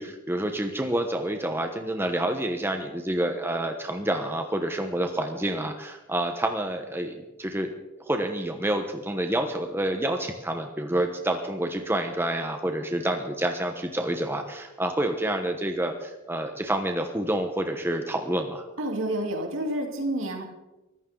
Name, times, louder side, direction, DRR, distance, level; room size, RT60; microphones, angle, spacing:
voice 1, 0.0-7.7 8.0-18.7, right 1 dB, 10° right, 5 dB, 1.1 m, -28 dB
voice 2, 18.8-20.4, right 1 dB, 65° right, 1 dB, 3.5 m, -29 dB
23.5 x 15.0 x 3.9 m, 1.0 s
head